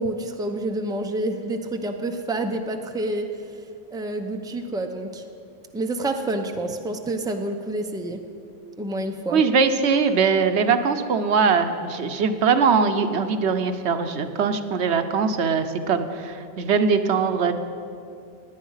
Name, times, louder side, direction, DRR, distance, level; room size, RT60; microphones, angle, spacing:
voice 1, 0.0-3.3 3.9-5.2 5.7-8.2 8.8-9.4, right 2 dB, 5° right, 5 dB, 0.6 m, -28 dB
voice 2, 9.3-17.5, right 5 dB, 80° right, 8 dB, 1.1 m, -21 dB
17.0 x 9.9 x 5.6 m, 2.5 s
omnidirectional pair, 1.1 m